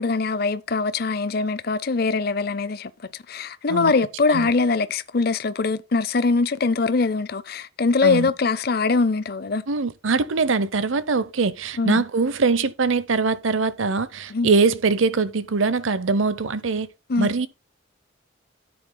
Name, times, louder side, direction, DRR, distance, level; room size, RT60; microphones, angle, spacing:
voice 1, 0.0-9.6 11.8-12.0 14.3-14.5 17.1-17.3, left 4 dB, 50° left, 0.5 m, -22 dB
voice 2, 9.7-16.9 17.2-17.5, right 4 dB, 80° right, 0.7 m, -22 dB
13.5 x 7.8 x 2.2 m
head